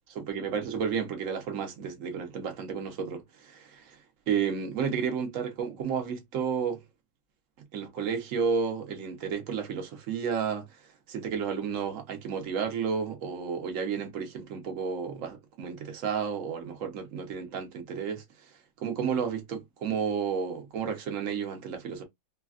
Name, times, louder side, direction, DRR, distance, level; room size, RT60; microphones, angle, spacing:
voice 1, 0.1-4.0 4.3-6.8 7.7-10.7 11.1-18.2 18.8-22.0, right 6 dB, 60° right, 0.9 m, -32 dB
3.3 x 2.2 x 2.3 m
omnidirectional pair, 2.2 m